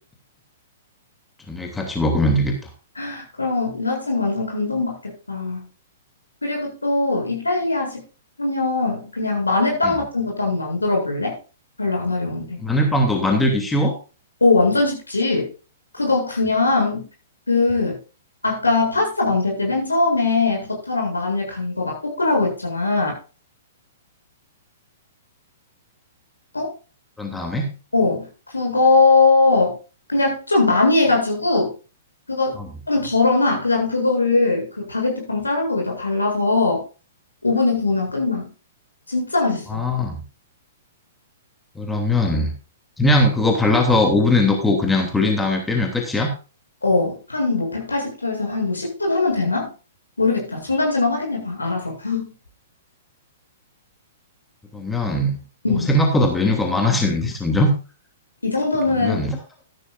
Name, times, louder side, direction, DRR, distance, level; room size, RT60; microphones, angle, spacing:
voice 1, 1.5-2.5 9.8-9.9 12.6-13.9 27.2-27.7 32.6-32.7 39.7-40.2 41.7-42.5 43.0-46.3 54.7-55.3 55.9-57.7 58.9-59.4, left 1 dB, 5° left, 2 dB, 2.9 m, -20 dB
voice 2, 3.0-5.7 6.4-8.0 8.4-11.4 11.8-12.6 14.4-15.5 15.9-17.1 17.5-18.0 18.4-23.1 26.5-26.7 27.9-28.3 28.5-29.8 30.1-31.7 32.3-32.6 32.9-36.8 37.4-38.5 39.1-39.8 46.8-49.7 50.2-52.3 55.6-55.9 58.4-59.2, left 3 dB, 80° left, 1 dB, 7.6 m, -21 dB
14.0 x 12.5 x 2.5 m, 0.34 s
figure-of-eight pair, 110°, 0 cm